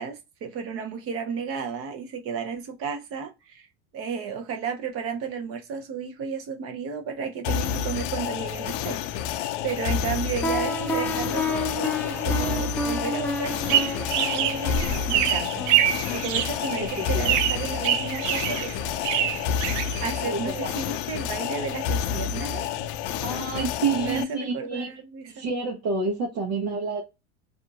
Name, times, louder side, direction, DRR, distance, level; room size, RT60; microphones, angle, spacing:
voice 1, 0.0-3.7 3.9-15.6 16.1-18.7 19.0-19.3 20.0-22.7 23.9-25.3, right 6 dB, 40° right, 0.8 m, -33 dB
sound 1, 7.4-24.2, left 8 dB, 65° left, 0.5 m, -29 dB
sound 2, 10.4-17.2, left 2 dB, 5° left, 0.4 m, -31 dB
sound 3, 13.4-20.5, right 11 dB, 80° right, 0.5 m, -26 dB
voice 2, 20.3-20.7 23.2-24.9 25.3-27.0, right 4 dB, 60° right, 1.1 m, -28 dB
2.7 x 2.4 x 2.5 m
supercardioid pair, 135°, 36 cm